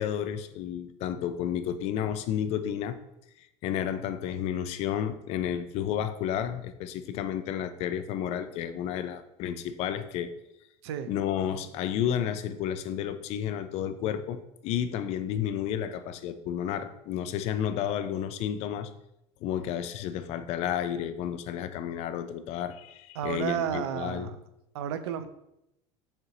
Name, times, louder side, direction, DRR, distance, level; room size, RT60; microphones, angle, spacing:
voice 1, 0.0-3.0 3.6-10.3 11.1-18.9 19.4-24.3, left 9 dB, 50° left, 11 dB, 0.4 m, -31 dB
voice 2, 23.2-24.4 24.7-25.3, right 9 dB, 85° right, 10 dB, 0.4 m, -32 dB
6.5 x 2.9 x 2.7 m, 0.84 s
supercardioid pair, 110°, 14 cm